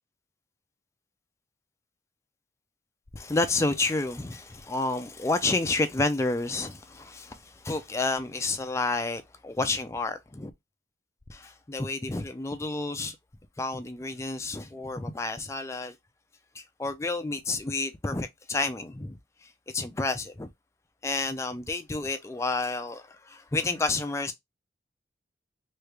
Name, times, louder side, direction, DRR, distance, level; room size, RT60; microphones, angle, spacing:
voice 1, 3.1-10.5 11.3-13.2 13.6-15.9 16.5-19.5 19.7-20.5 21.0-24.3, left 3 dB, 15° left, 0.4 m, -30 dB
3.1 x 2.4 x 3.3 m
head